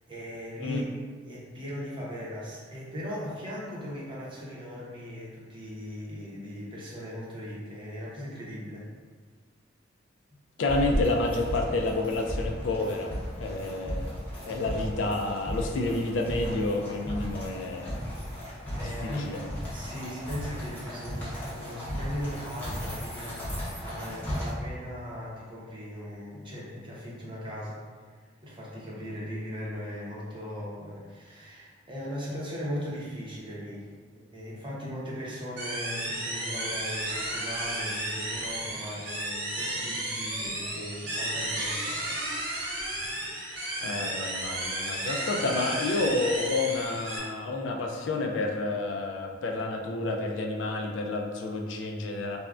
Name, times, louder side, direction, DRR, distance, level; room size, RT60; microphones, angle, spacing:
voice 1, 0.1-0.9 1.2-8.9 18.7-19.3 19.6-27.8 28.1-28.2 28.4-33.9 34.1-42.0, equal, 25° right, -6 dB, 0.6 m, -38 dB
voice 2, 10.6-13.1 13.4-18.0 18.8-19.4 43.8-52.4, left 2 dB, 75° left, 2 dB, 0.3 m, -30 dB
sound 1, 10.7-24.5, equal, 10° left, 0.8 m, -35 dB
sound 2, 35.6-47.2, right 1 dB, 70° right, 0.9 m, -33 dB
3.4 x 2.1 x 2.4 m, 1.5 s
head